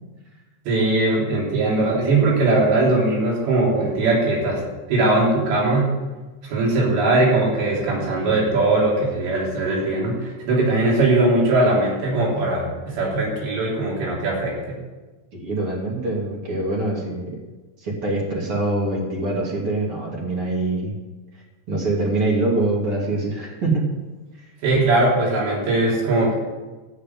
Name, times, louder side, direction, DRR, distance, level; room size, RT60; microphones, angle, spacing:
voice 1, 0.7-4.6 4.9-5.9 6.4-14.8 24.6-26.3, right 2 dB, 65° right, -4 dB, 5.5 m, -20 dB
voice 2, 15.3-17.4 17.8-20.9 21.7-23.9 24.3-24.4, right 2 dB, 35° right, -3 dB, 2.9 m, -24 dB
13.0 x 6.7 x 9.3 m, 1.2 s
omnidirectional pair, 5.5 m